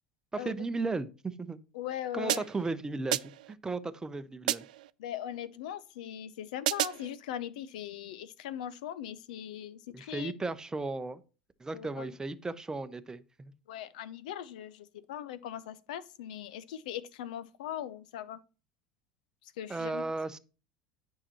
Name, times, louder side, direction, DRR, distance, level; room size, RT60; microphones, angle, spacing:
voice 1, 0.3-1.6 2.1-4.6 9.9-11.2 11.6-13.5 19.7-20.4, right 3 dB, 15° right, 0.7 m, -35 dB
voice 2, 1.7-2.5 5.0-10.3 11.7-12.1 13.7-18.4 19.4-20.0, left 10 dB, 75° left, 0.6 m, -40 dB
sound 1, 2.3-2.7 3.1-3.5 4.5-4.9 6.7-7.1, right 14 dB, 80° right, 0.3 m, -32 dB
9.8 x 5.7 x 3.0 m
hypercardioid pair, 85°, 4 cm